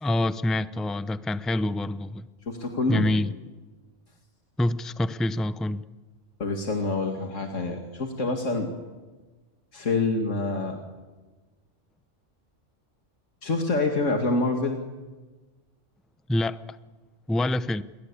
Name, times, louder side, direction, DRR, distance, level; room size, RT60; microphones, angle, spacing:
voice 1, 0.0-2.3 2.9-3.3 4.6-5.8 16.3-16.8 17.3-17.8, left 1 dB, ahead, 0.4 m, -26 dB
voice 2, 2.5-3.1 6.4-8.7 9.7-10.8 13.4-14.8, left 3 dB, 80° left, 2.6 m, -26 dB
28.5 x 22.0 x 8.5 m
omnidirectional pair, 1.3 m